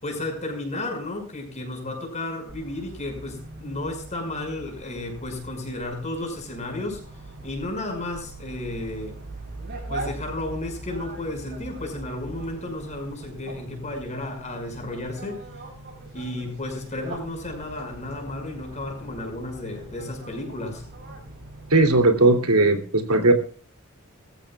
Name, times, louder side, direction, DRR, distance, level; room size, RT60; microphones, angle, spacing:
voice 1, 0.0-7.0 7.4-9.2 9.9-15.4 16.1-20.8, left 2 dB, 30° left, 5.8 m, -33 dB
sound 1, 2.5-22.1, right 2 dB, 50° right, 7.7 m, -41 dB
voice 2, 21.7-23.3, right 2 dB, 90° right, 3.0 m, -18 dB
22.5 x 14.5 x 2.4 m
head